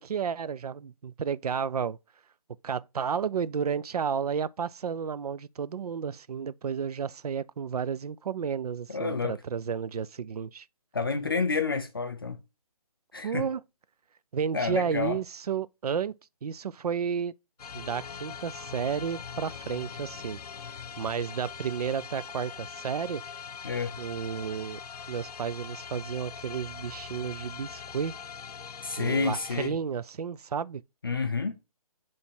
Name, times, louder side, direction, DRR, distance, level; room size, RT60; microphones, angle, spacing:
voice 1, 0.0-2.0 2.6-10.7 13.2-13.6 14.3-16.2 16.4-17.3 17.7-20.4 21.0-23.2 24.0-24.8 25.1-28.1 29.0-30.8, right 7 dB, 80° right, 0.5 m, -32 dB
voice 2, 8.9-9.4 10.9-12.4 13.1-13.5 14.5-15.2 23.6-24.0 28.8-29.8 31.0-31.6, left 4 dB, 35° left, 0.5 m, -29 dB
sound 1, 17.6-29.7, left 7 dB, 85° left, 0.6 m, -42 dB
6.9 x 3.3 x 4.4 m
hypercardioid pair, 175°, 19 cm